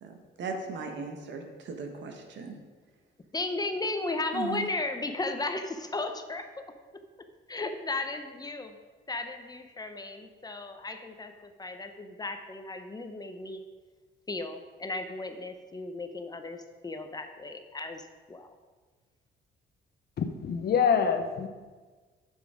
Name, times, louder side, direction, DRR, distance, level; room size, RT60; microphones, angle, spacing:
voice 1, 0.0-2.5 4.3-4.7, right 4 dB, 65° right, 4 dB, 1.5 m, -38 dB
voice 2, 3.3-6.6 7.5-8.8 9.1-13.6 14.3-18.5, left 2 dB, 20° left, 7 dB, 0.8 m, -35 dB
voice 3, 20.2-21.5, left 7 dB, 55° left, 7 dB, 0.9 m, -25 dB
9.0 x 7.3 x 5.0 m, 1.4 s
cardioid pair, 115°, 20 cm